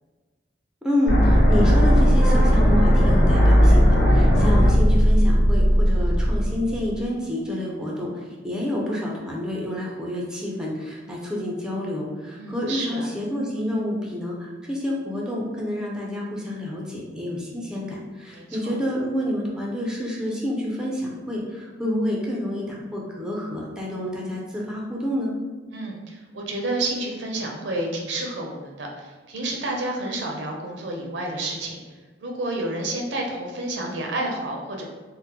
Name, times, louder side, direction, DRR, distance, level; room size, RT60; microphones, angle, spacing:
voice 1, 0.8-25.3, left 1 dB, 5° right, -3 dB, 0.4 m, -28 dB
sound 1, 1.1-7.0, equal, 65° left, 1.0 m, -17 dB
voice 2, 12.4-13.1 18.3-18.7 25.7-31.8 32.2-34.8, right 2 dB, 70° right, 0 dB, 0.6 m, -30 dB
3.6 x 2.0 x 2.8 m, 1.3 s
head